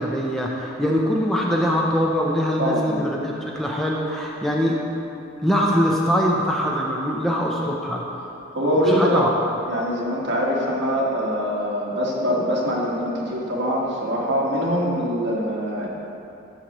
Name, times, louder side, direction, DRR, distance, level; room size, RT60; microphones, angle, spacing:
voice 1, 0.0-4.8 5.4-8.0 8.8-9.3, equal, ahead, -3 dB, 0.6 m, -22 dB
voice 2, 2.6-3.0 8.5-9.2 9.7-15.9, equal, 60° right, -4 dB, 1.6 m, -23 dB
13.0 x 6.4 x 3.1 m, 2.7 s
head